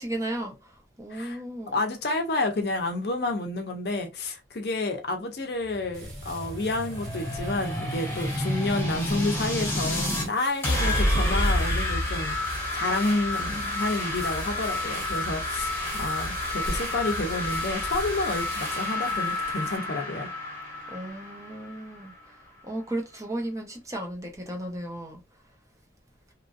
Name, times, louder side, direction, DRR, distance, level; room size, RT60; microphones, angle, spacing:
voice 1, 0.0-1.8 20.9-22.4 22.6-25.2, right 1 dB, 15° right, 0.7 m, -35 dB
voice 2, 1.1-1.4 1.7-12.3 12.7-20.3, left 2 dB, 55° left, 0.6 m, -30 dB
sound 1, 5.6-10.3 10.6-22.2, left 1 dB, 10° left, 0.9 m, -29 dB
sound 2, 5.9-19.8, right 1 dB, 65° right, 1.5 m, -44 dB
3.0 x 2.5 x 2.4 m
head